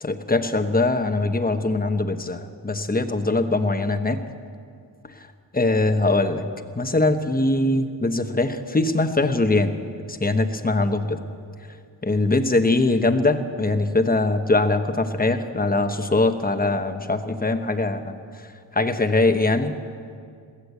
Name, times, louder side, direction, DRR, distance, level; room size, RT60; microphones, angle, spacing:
voice 1, 0.0-4.2 5.5-6.5 6.8-9.7 10.1-11.2 12.0-18.1 18.7-19.7, left 2 dB, 20° left, 8 dB, 1.1 m, -22 dB
22.0 x 16.5 x 8.3 m, 2.3 s
wide cardioid pair, 150°, 43 cm